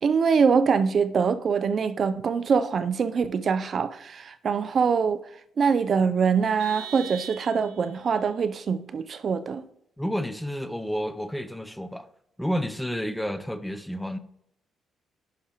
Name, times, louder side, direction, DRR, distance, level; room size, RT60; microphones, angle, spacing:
voice 1, 0.0-5.2 5.6-9.6, right 6 dB, 50° right, 0.4 m, -24 dB
Vehicle horn car horn honking, 6.6-8.0, right 8 dB, 85° right, 0.9 m, -40 dB
voice 2, 10.0-12.1 12.4-14.2, equal, 5° left, 0.6 m, -30 dB
10.5 x 5.8 x 2.9 m
cardioid pair, 90°, 0 cm